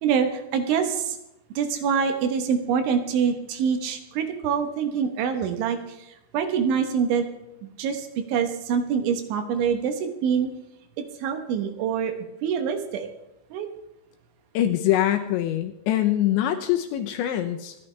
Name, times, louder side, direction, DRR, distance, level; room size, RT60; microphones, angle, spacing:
voice 1, 0.0-1.2 1.6-7.3 7.6-10.5 11.2-12.1 12.4-13.1 13.5-13.7, right 7 dB, 75° right, 7 dB, 3.3 m, -25 dB
voice 2, 14.5-17.8, left 12 dB, 80° left, 6 dB, 2.8 m, -24 dB
25.5 x 11.0 x 3.3 m, 0.87 s
omnidirectional pair, 5.8 m